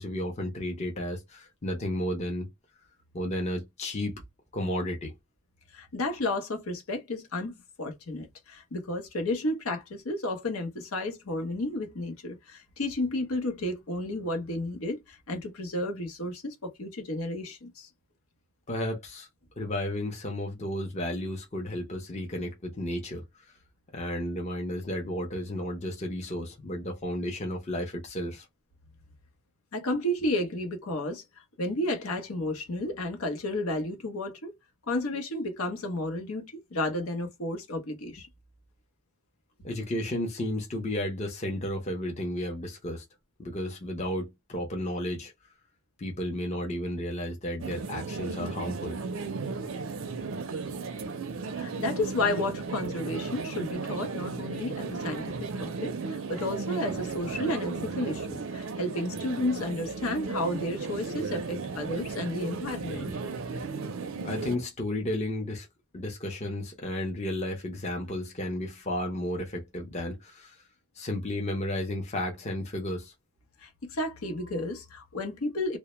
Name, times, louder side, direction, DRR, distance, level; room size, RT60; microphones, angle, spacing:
voice 1, 0.0-2.5 3.1-4.2 4.5-5.1 18.7-19.3 19.6-23.6 23.9-28.5 39.6-43.0 43.4-45.3 46.0-49.0 64.2-65.7 65.9-70.6 71.0-73.1, left 1 dB, 30° left, 0.5 m, -33 dB
voice 2, 5.7-17.9 29.7-31.2 31.6-34.5 34.9-38.3 51.6-63.2 73.6-75.8, left 1 dB, 85° left, 0.7 m, -32 dB
sound 1, 47.6-64.6, right 4 dB, 70° right, 0.4 m, -35 dB
2.1 x 2.0 x 2.9 m
head